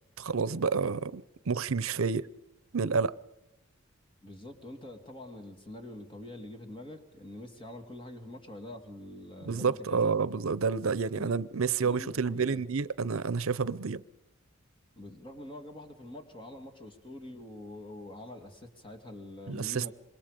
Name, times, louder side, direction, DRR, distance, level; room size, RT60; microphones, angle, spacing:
voice 1, 0.2-2.3 2.7-3.1 9.5-14.0 19.5-19.9, right 5 dB, 75° right, 0.7 m, -29 dB
voice 2, 4.2-10.1 11.0-11.4 11.8-12.6 15.0-19.9, left 1 dB, 25° left, 2.7 m, -45 dB
26.5 x 22.0 x 5.2 m
head